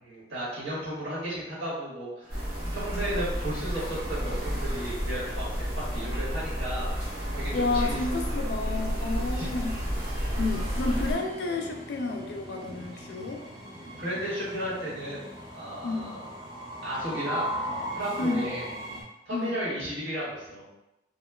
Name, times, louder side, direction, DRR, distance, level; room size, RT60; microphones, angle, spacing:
voice 1, 0.0-5.4 5.8-7.0 7.3-8.2 9.3-9.5 14.0-16.3 16.8-17.6 17.9-18.7 19.2-20.6, right 1 dB, 75° right, -9 dB, 1.3 m, -34 dB
Train, 2.2-19.0, equal, 25° right, 0.5 m, -41 dB
sound 1, 2.3-11.1, equal, 55° right, 1.0 m, -31 dB
voice 2, 7.5-9.8 10.3-13.4 15.8-16.2 18.2-18.5 19.3-19.6, left 3 dB, 60° left, 3 dB, 0.3 m, -30 dB
2.9 x 2.1 x 2.2 m, 0.92 s
head